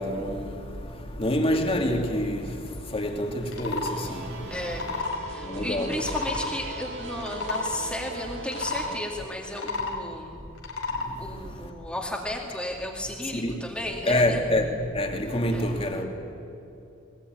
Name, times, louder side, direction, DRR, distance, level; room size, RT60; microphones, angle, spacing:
voice 1, 0.0-5.0 5.4-6.0 10.9-11.7 13.2-13.6 14.1-16.1, left 1 dB, 30° left, 2.7 m, -28 dB
sound 1, 3.4-3.9 4.6-5.2 5.9-6.5 7.1-7.8 8.5-8.9 9.4-10.0 10.6-11.1, left 3 dB, 75° left, 4.1 m, -31 dB
sound 2, 3.8-9.0, right 3 dB, 60° right, 4.6 m, -39 dB
voice 2, 4.5-10.4 11.2-14.4 15.5-15.7, left 1 dB, 5° left, 2.4 m, -34 dB
21.0 x 20.5 x 9.4 m
head